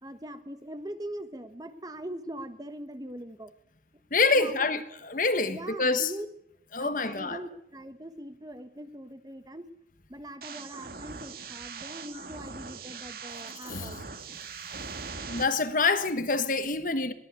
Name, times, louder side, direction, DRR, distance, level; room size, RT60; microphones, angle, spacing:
voice 1, 0.0-3.5 4.3-4.8 5.4-6.3 6.8-9.7 10.1-14.0, right 1 dB, 20° right, 1.3 m, -41 dB
voice 2, 4.1-6.1 6.7-7.4 13.7-13.9 15.3-17.1, left 3 dB, 50° left, 1.5 m, -26 dB
sound 1, 10.4-15.4, right 5 dB, 55° right, 2.1 m, -41 dB
22.5 x 17.5 x 8.3 m
head